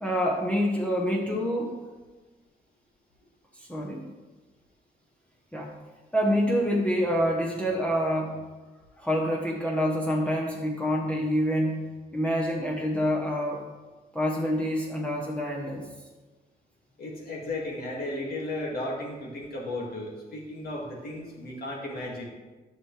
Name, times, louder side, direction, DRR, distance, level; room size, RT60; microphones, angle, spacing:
voice 1, 0.0-1.8 3.5-4.0 5.5-5.7 6.1-8.5 9.0-13.6 14.1-15.9, equal, 5° left, -3 dB, 0.9 m, -27 dB
voice 2, 17.0-22.2, left 1 dB, 65° left, -2 dB, 2.1 m, -34 dB
11.0 x 6.1 x 3.3 m, 1.2 s
wide cardioid pair, 150°, 17 cm